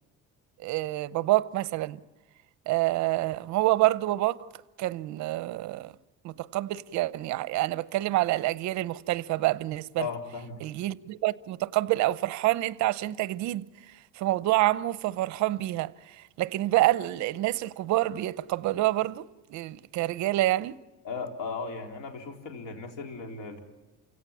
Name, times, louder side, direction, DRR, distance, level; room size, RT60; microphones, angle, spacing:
voice 1, 0.6-2.0 2.7-4.4 4.8-5.9 6.2-10.1 10.6-13.6 14.2-15.9 16.4-19.2 19.5-20.8, right 17 dB, 60° right, 0.8 m, -27 dB
voice 2, 10.0-10.6 21.0-23.6, left 5 dB, 80° left, 3.9 m, -36 dB
29.5 x 17.0 x 7.2 m
cardioid pair, 155°, 32 cm